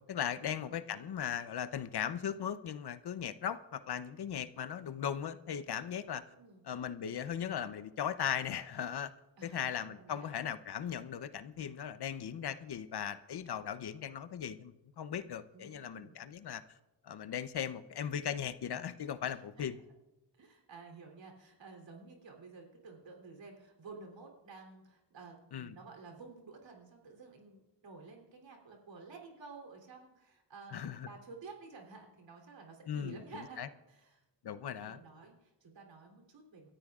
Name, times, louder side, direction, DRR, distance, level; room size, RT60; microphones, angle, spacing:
voice 1, 0.1-6.2 6.6-9.1 9.4-16.6 17.0-19.8 25.5-25.7 30.7-31.1 32.9-33.2 33.6-33.7 34.4-35.0, left 8 dB, 60° left, 13 dB, 0.8 m, -38 dB
voice 2, 6.3-6.7 9.4-10.3 15.5-16.2 19.6-19.7 20.4-36.7, right 4 dB, 80° right, 1 dB, 3.3 m, -52 dB
28.5 x 13.5 x 2.4 m, 0.98 s
cardioid pair, 95°, 44 cm